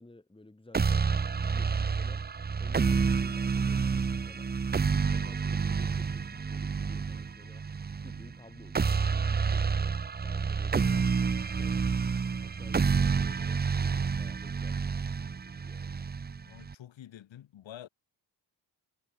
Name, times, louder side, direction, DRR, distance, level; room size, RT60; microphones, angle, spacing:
voice 1, 0.0-2.3 2.6-4.5 5.1-7.6 8.0-10.0 10.2-12.2 12.4-15.1 15.4-16.0, left 2 dB, 10° left, 5.5 m, -54 dB
sound 1, 0.7-16.7, right 5 dB, 20° right, 0.7 m, -29 dB
voice 2, 16.5-17.9, left 11 dB, 85° left, 5.4 m, -48 dB
cardioid pair, 100°, 44 cm